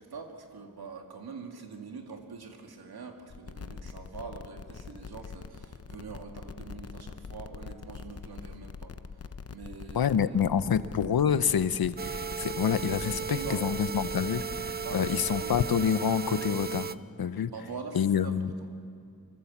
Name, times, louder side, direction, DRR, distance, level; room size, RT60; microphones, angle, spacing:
voice 1, 0.0-10.1 10.7-10.8 13.0-13.7 14.7-15.6 17.4-18.4, right 5 dB, 80° right, 3 dB, 2.6 m, -44 dB
sound 1, 3.3-15.8, left 5 dB, 40° left, 0.8 m, -44 dB
voice 2, 9.9-16.9 17.2-17.5 17.9-18.5, left 7 dB, 75° left, 13 dB, 0.9 m, -27 dB
sound 2, 12.0-16.9, right 6 dB, 25° right, 0.6 m, -36 dB
25.0 x 23.0 x 7.3 m, 2.3 s
wide cardioid pair, 100°, 37 cm